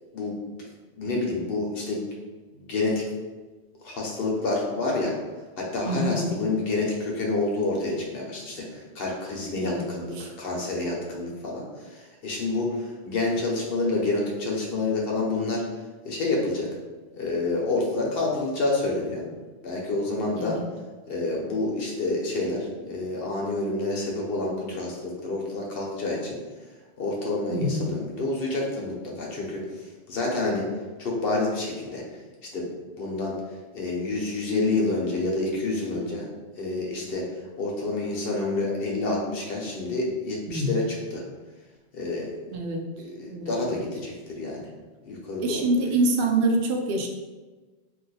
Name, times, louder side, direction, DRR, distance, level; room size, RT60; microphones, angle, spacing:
voice 1, 1.0-2.1 2.7-3.0 3.8-5.1 5.6-15.6 16.0-16.7 17.1-19.2 19.6-20.6 21.1-26.4 27.0-29.6 30.1-30.6 31.0-32.0 32.5-32.7 33.0-33.4 33.7-36.3 36.6-37.3 37.6-41.2 41.9-42.4 43.0-44.7 45.0-45.7, left 2 dB, 65° left, -2 dB, 0.9 m, -28 dB
voice 2, 5.9-6.4 9.6-9.8 10.2-10.3 20.4-20.6 27.5-27.9 40.5-40.8 42.5-42.8 43.3-43.8 45.4-47.1, right 1 dB, 85° right, 3 dB, 0.8 m, -26 dB
2.6 x 2.3 x 4.0 m, 1.3 s
omnidirectional pair, 1.1 m